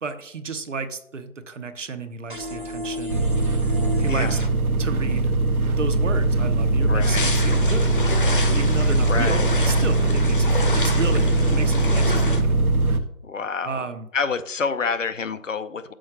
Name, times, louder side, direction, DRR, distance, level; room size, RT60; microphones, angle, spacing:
voice 1, 0.0-3.3 4.0-4.4 4.8-5.3 5.8-7.9 8.5-12.5 13.6-14.1, right 4 dB, 55° right, 9 dB, 0.9 m, -32 dB
sound 1, 2.3-4.5, left 1 dB, 40° right, 0.5 m, -33 dB
sound 2, 3.1-13.0, right 2 dB, 80° right, 1.2 m, -21 dB
voice 2, 4.1-4.4 6.9-7.3 9.1-9.5 13.2-13.9 14.1-15.9, left 5 dB, 60° left, 12 dB, 0.8 m, -28 dB
sound 3, 7.0-12.4, left 2 dB, 35° left, 1.0 m, -29 dB
6.3 x 5.7 x 5.8 m, 0.74 s
hypercardioid pair, 180°, 43 cm